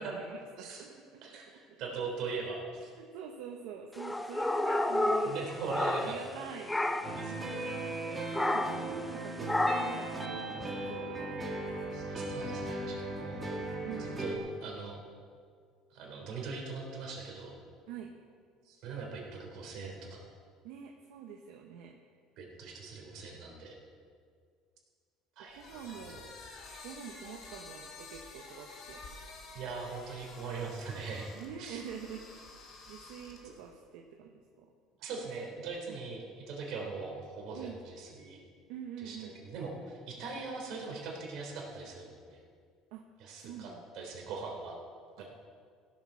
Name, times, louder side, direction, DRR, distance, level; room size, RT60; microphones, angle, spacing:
voice 1, 0.0-1.4 1.7-2.3 2.9-7.4 7.7-11.4 11.6-12.0 13.8-14.1 17.9-18.1 20.6-22.0 25.6-26.2 26.8-29.0 31.3-32.5 32.9-34.7 35.9-36.0 37.5-37.8 38.7-39.4 42.9-43.0 43.4-43.8 45.2-45.3, right 7 dB, 80° right, 2 dB, 1.0 m, -46 dB
voice 2, 1.8-2.9 5.2-6.3 7.1-7.6 8.7-8.9 11.9-13.4 14.0-15.0 15.9-17.5 18.7-20.2 22.4-23.7 25.4-26.0 29.5-31.3 31.6-31.8 33.4-33.5 35.0-38.4 39.0-42.4 43.2-44.8 45.2-45.3, right 4 dB, 60° right, 0 dB, 3.5 m, -41 dB
sound 1, 4.0-6.4 6.7-7.2 8.3-8.9 9.5-10.1, left 2 dB, 10° left, 0.6 m, -30 dB
sound 2, 7.0-14.4, right 2 dB, 15° right, 2.0 m, -37 dB
sound 3, 25.5-33.7, left 3 dB, 55° left, 3.1 m, -50 dB
16.0 x 7.4 x 6.3 m, 2.1 s
cardioid pair, 130°, 0 cm